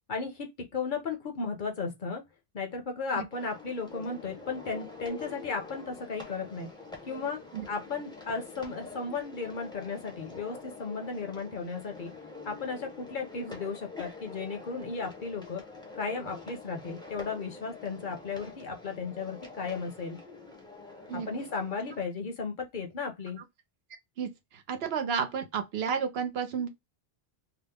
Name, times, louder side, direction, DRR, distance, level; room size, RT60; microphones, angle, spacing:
voice 1, 0.1-2.2 2.5-6.7 7.1-7.4 7.7-12.1 12.5-15.6 16.0-20.2 21.1-23.4, left 4 dB, 55° left, 0.8 m, -35 dB
sound 1, 3.3-22.0, left 3 dB, 5° left, 0.6 m, -46 dB
voice 2, 24.2-26.7, right 7 dB, 75° right, 0.9 m, -32 dB
2.9 x 2.0 x 3.4 m
omnidirectional pair, 1.1 m